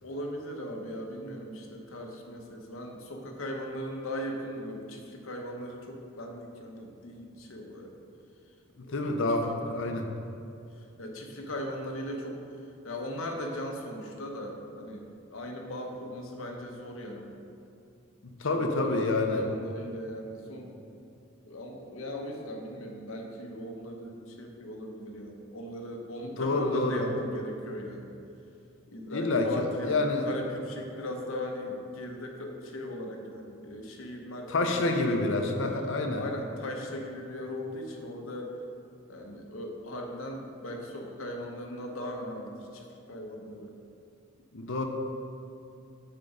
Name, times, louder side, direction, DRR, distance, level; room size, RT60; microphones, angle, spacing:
voice 1, 0.0-7.9 8.8-9.2 11.0-12.4 12.8-17.4 18.5-20.8 21.4-28.2 28.9-35.5 36.2-38.6 39.1-43.7, equal, 85° left, 1 dB, 1.0 m, -38 dB
voice 2, 8.8-10.1 18.2-19.4 26.4-27.0 29.1-30.3 34.5-36.2 44.5-44.8, left 2 dB, 70° left, 4 dB, 0.7 m, -28 dB
7.5 x 4.5 x 5.3 m, 2.6 s
head